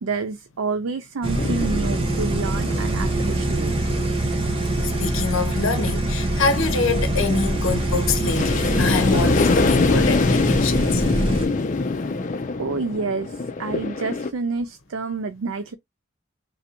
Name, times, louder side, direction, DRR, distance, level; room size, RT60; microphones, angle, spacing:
voice 1, 0.0-3.7 12.6-15.7, right 4 dB, 90° right, 0.4 m, -28 dB
sound 1, 1.2-11.5, right 1 dB, 25° right, 0.8 m, -24 dB
sound 2, 1.4-14.3, left 3 dB, 40° left, 0.5 m, -25 dB
voice 2, 4.8-11.0, left 4 dB, 80° left, 0.7 m, -25 dB
3.2 x 2.6 x 4.2 m
head